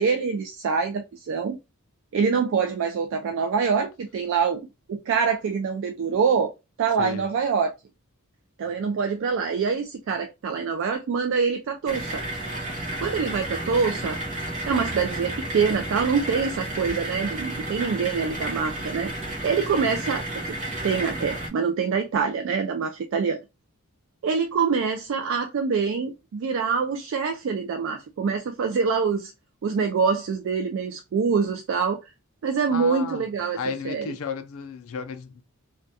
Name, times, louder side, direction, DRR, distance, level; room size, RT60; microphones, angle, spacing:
voice 1, 0.0-1.6 2.1-6.5 6.8-7.7 8.6-12.2 13.0-14.2 14.7-19.1 19.4-20.6 20.8-23.4 24.2-29.3 29.6-32.0 32.4-33.6 33.8-34.1, right 5 dB, 60° right, 0.3 m, -25 dB
sound 1, 11.9-21.5, right 1 dB, 35° right, 0.7 m, -32 dB
voice 2, 32.7-33.2 33.6-35.4, left 6 dB, 65° left, 0.4 m, -33 dB
2.3 x 2.2 x 2.6 m
head